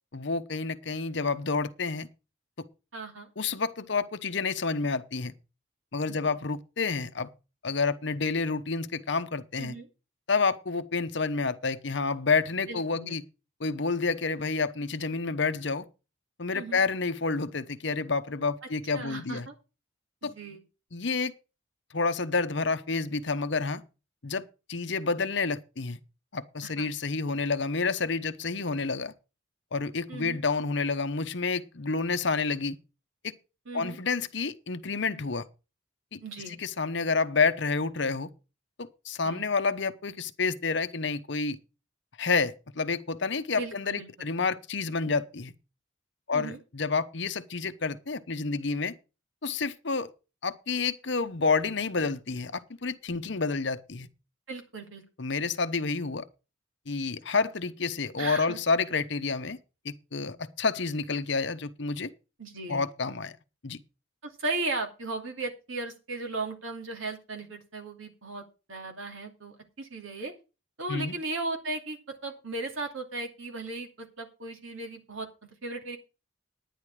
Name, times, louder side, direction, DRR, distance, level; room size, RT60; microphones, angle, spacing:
voice 1, 0.1-2.1 3.4-5.3 5.9-7.3 7.6-9.8 10.3-13.2 13.6-15.9 16.4-19.5 20.2-20.3 20.9-21.3 21.9-23.8 24.2-24.4 24.7-26.0 26.3-29.1 29.7-32.8 33.2-33.3 33.7-35.4 36.1-36.2 36.5-38.3 38.8-41.6 42.2-45.5 46.3-48.9 49.4-50.1 50.4-54.1 55.2-56.2 56.9-59.6 59.8-62.1 62.7-63.3 63.6-63.8 70.9-71.1, left 4 dB, 60° left, 0.9 m, -29 dB
voice 2, 2.9-3.3 6.1-6.3 9.6-9.9 12.7-13.2 16.5-16.8 18.9-19.5 20.2-20.6 26.6-26.9 30.1-30.4 33.7-34.0 36.2-36.6 39.2-39.4 43.6-44.1 46.3-46.6 54.5-55.0 58.2-58.6 62.4-62.9 64.2-68.4 68.7-70.3 70.8-75.3 75.6-76.0, right 3 dB, 75° right, 2.6 m, -36 dB
10.5 x 10.0 x 4.8 m
head